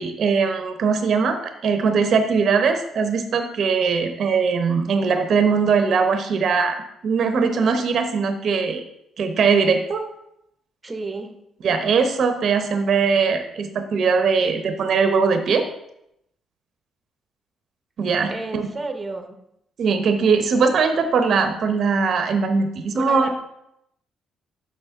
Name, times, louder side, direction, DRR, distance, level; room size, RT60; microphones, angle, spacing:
voice 1, 0.0-6.8 7.0-8.8 9.2-10.0 11.6-15.6 18.0-18.7 19.8-23.4, right 5 dB, 60° right, 6 dB, 0.7 m, -20 dB
voice 2, 10.8-11.4 18.3-19.4 22.9-23.3, right 3 dB, 25° right, 5 dB, 0.8 m, -31 dB
6.0 x 5.8 x 3.6 m, 0.80 s
cardioid pair, 90°, 0 cm